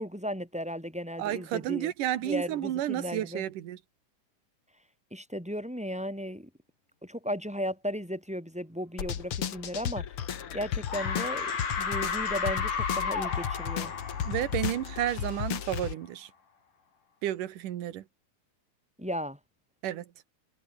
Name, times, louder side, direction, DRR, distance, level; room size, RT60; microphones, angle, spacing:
voice 1, 0.0-1.9 2.2-3.4 5.1-6.5 7.0-10.1 10.5-13.9 19.0-19.4, equal, ahead, 2.8 m, -35 dB
voice 2, 1.2-3.8 14.2-16.3 17.2-18.0 19.8-20.1, right 12 dB, 85° right, 3.0 m, -31 dB
sound 1, 9.0-15.9, left 9 dB, 50° left, 2.2 m, -34 dB
sound 2, 10.2-10.6 10.9-15.5, left 5 dB, 90° left, 6.0 m, -33 dB
omnidirectional pair, 3.6 m